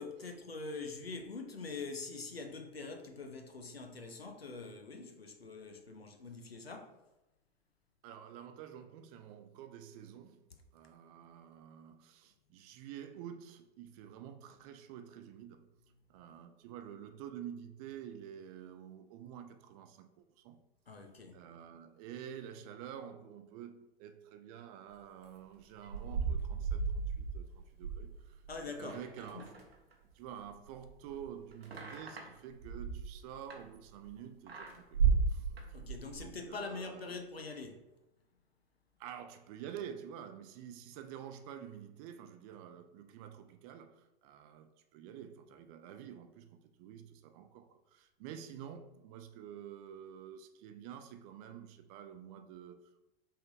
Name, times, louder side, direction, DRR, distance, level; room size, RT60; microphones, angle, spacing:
voice 1, 0.0-7.0 20.9-21.4 28.5-29.0 29.3-29.5 35.7-37.8, left 3 dB, 85° left, 0.7 m, -44 dB
voice 2, 8.0-10.4 10.7-15.7 16.1-20.6 21.3-29.5 30.1-35.0 35.3-35.5 36.2-37.2 39.0-53.1, right 9 dB, 40° right, 0.5 m, -49 dB
sound 1, 25.6-30.1 30.4-34.1 34.5-36.3, right 5 dB, 80° right, 0.9 m, -35 dB
5.7 x 3.5 x 2.6 m
figure-of-eight pair, 90°, 30 cm